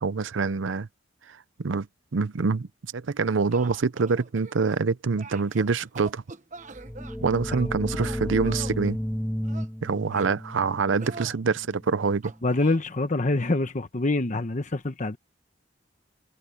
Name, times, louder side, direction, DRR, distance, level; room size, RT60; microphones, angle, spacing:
voice 1, 0.0-0.9 1.6-1.9 2.1-2.7 2.9-6.2 7.2-9.0 9.8-12.3, right 4 dB, 90° right, 0.6 m, -25 dB
sound 1, 3.2-4.8 5.2-7.2 7.9-8.8 9.4-10.3 11.0-11.4 12.2-12.8, right 4 dB, 40° right, 1.2 m, -44 dB
sound 2, 6.7-12.3, equal, 5° left, 0.8 m, -33 dB
voice 2, 12.4-15.2, left 2 dB, 40° left, 1.0 m, -25 dB
head